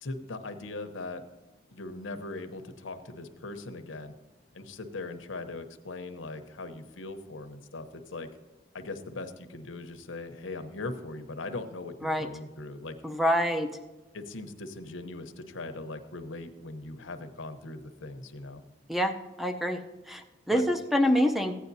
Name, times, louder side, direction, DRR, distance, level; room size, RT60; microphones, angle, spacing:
voice 1, 0.0-1.2 1.7-4.1 4.5-8.3 8.7-13.0 14.1-18.6 20.5-20.6, left 2 dB, 90° left, 7 dB, 0.9 m, -40 dB
voice 2, 13.0-13.7 18.9-19.8 20.1-21.5, equal, ahead, 5 dB, 0.6 m, -26 dB
15.0 x 9.3 x 2.7 m, 1.2 s
head